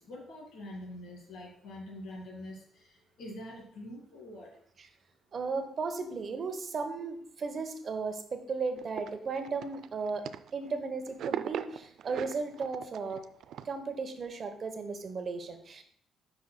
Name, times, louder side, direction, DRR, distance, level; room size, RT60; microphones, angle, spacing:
voice 1, 0.0-4.5, left 1 dB, 75° left, -1 dB, 2.1 m, -45 dB
voice 2, 5.3-10.3 10.5-13.2 13.6-15.8, right 4 dB, 50° right, 7 dB, 0.9 m, -35 dB
sound 1, 8.8-10.8 11.1-13.7, right 9 dB, 75° right, 0.3 m, -39 dB
9.4 x 5.5 x 2.2 m, 0.63 s
cardioid pair, 90°, 0 cm